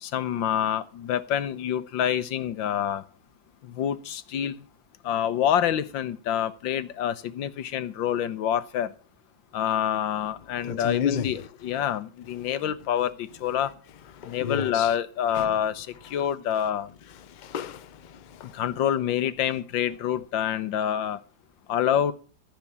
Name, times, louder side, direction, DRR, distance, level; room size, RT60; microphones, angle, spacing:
voice 1, 0.0-3.0 3.6-4.5 5.0-8.9 9.5-13.7 14.2-16.9 18.5-21.2 21.7-22.1, left 10 dB, 90° left, 1.6 m, -27 dB
voice 2, 10.6-11.4 14.2-14.9 15.3-15.5 17.4-18.5, left 8 dB, 55° left, 0.5 m, -32 dB
14.0 x 5.9 x 8.6 m
omnidirectional pair, 2.0 m